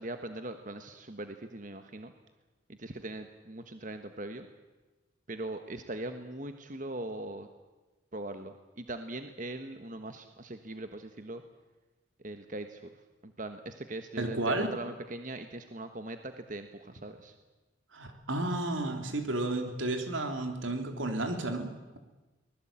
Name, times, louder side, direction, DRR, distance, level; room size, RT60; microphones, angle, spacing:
voice 1, 0.0-2.1 2.7-4.5 5.3-7.5 8.1-11.4 12.2-12.8 13.2-17.3, right 2 dB, 40° right, 7 dB, 1.3 m, -40 dB
voice 2, 14.2-14.7 17.9-22.0, right 2 dB, 80° right, 5 dB, 3.7 m, -32 dB
24.5 x 20.0 x 8.9 m, 1.2 s
head